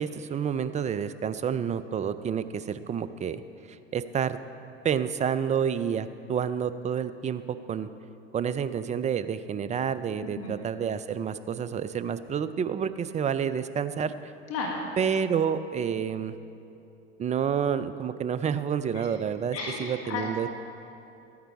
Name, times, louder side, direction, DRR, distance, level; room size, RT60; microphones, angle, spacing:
voice 1, 0.0-3.4 3.7-4.4 4.8-7.9 8.3-14.3 15.0-16.3 17.2-20.5, right 7 dB, 20° right, 13 dB, 0.4 m, -29 dB
voice 2, 14.5-14.8 18.9-19.1 19.5-20.3, left 4 dB, 45° left, 0 dB, 1.6 m, -33 dB
12.5 x 9.5 x 4.7 m, 2.7 s
hypercardioid pair, 80°, 32 cm